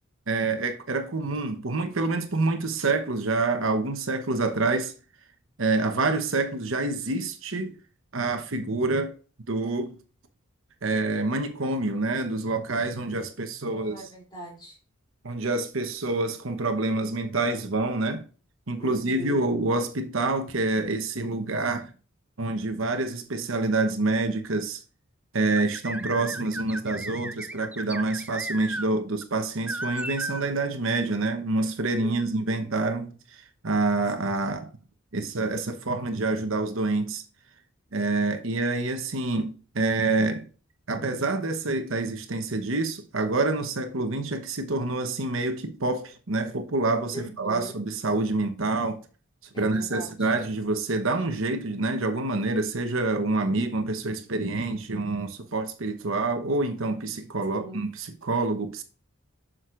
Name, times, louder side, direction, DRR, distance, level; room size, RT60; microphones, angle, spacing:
voice 1, 0.3-4.9 5.6-7.7 8.1-9.1 9.5-10.0 10.8-14.1 15.2-18.2 18.7-21.9 22.4-24.8 25.3-34.7 35.1-37.2 37.9-40.5 40.9-49.0 49.6-58.8, right 2 dB, 65° right, 1.0 m, -27 dB
voice 2, 13.6-14.8 18.8-19.4 32.0-32.6 47.1-47.8 49.5-50.3 57.5-57.8, right 2 dB, 20° left, 3.2 m, -40 dB
sound 1, 25.6-28.9 29.2-29.3 29.7-30.4, right 2 dB, 5° right, 0.3 m, -35 dB
7.8 x 6.4 x 2.5 m
head